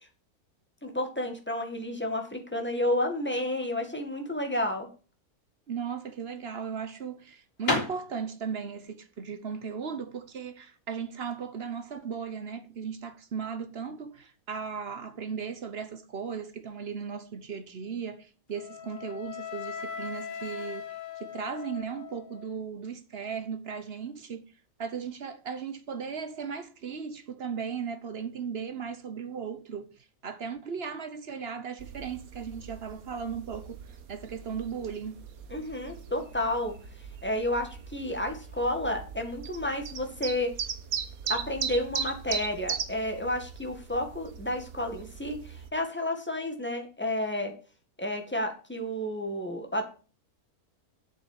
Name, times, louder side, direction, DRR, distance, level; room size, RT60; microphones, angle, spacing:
voice 1, 0.8-4.9 35.5-36.8 37.2-40.5 41.3-47.5 48.0-49.8, left 1 dB, 5° left, 1.9 m, -31 dB
voice 2, 5.7-20.9 21.2-24.4 24.8-29.9 30.2-33.8 34.1-35.2, right 6 dB, 45° right, 1.1 m, -37 dB
sound 1, 6.0-11.4, left 2 dB, 70° left, 3.6 m, -35 dB
Wind instrument woodwind instrument, 18.5-22.6, left 7 dB, 35° left, 1.3 m, -40 dB
sound 2, 31.8-45.7, right 7 dB, 70° right, 1.5 m, -39 dB
8.3 x 6.9 x 8.0 m
omnidirectional pair, 1.6 m